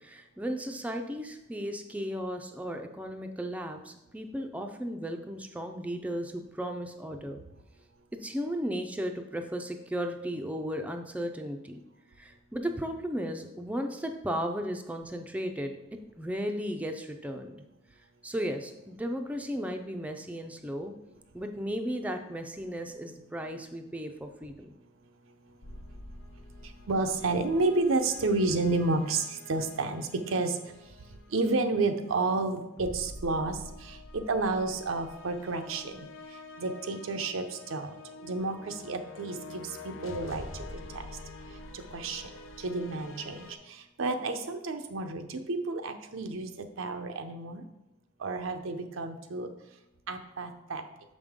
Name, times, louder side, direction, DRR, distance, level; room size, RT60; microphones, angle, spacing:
voice 1, 0.0-7.4 8.1-11.8 12.2-17.6 18.2-20.9 21.3-24.7, equal, 5° right, 4 dB, 0.4 m, -35 dB
sound 1, 25.6-43.6, left 2 dB, 85° left, 0.7 m, -47 dB
voice 2, 26.9-30.6 31.3-36.1 36.6-37.9 38.2-40.4 40.9-41.0 41.7-42.3 42.6-46.5 46.8-47.6 48.2-49.5 50.1-50.8, right 3 dB, 90° right, 6 dB, 0.6 m, -30 dB
6.5 x 5.2 x 3.6 m, 0.91 s
head